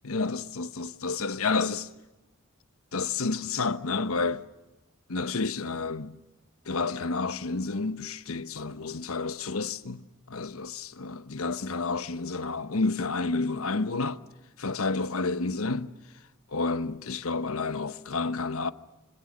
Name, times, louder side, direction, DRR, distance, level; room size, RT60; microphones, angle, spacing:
voice 1, 0.0-1.9 2.9-4.4 5.1-6.2 6.6-14.2 14.6-15.9 16.5-18.7, left 3 dB, 85° left, 1.1 m, -30 dB
27.0 x 25.0 x 6.4 m
head